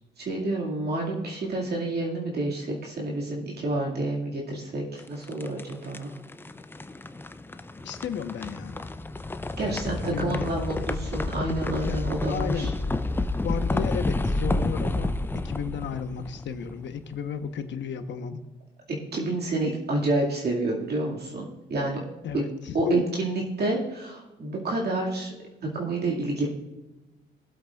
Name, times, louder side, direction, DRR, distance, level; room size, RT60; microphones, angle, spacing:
voice 1, 0.2-6.1 9.6-12.7 19.1-22.0 22.7-25.3 25.7-26.5, right 2 dB, 55° right, -3 dB, 2.2 m, -29 dB
sound 1, 5.0-17.1, left 2 dB, 10° left, 0.5 m, -30 dB
voice 2, 7.8-8.8 9.6-10.6 11.8-12.0 12.3-12.8 13.4-15.1 15.4-18.4 22.2-23.0, left 7 dB, 65° left, 8 dB, 1.1 m, -33 dB
21.0 x 7.8 x 2.4 m, 1.0 s
cardioid pair, 90°, 20 cm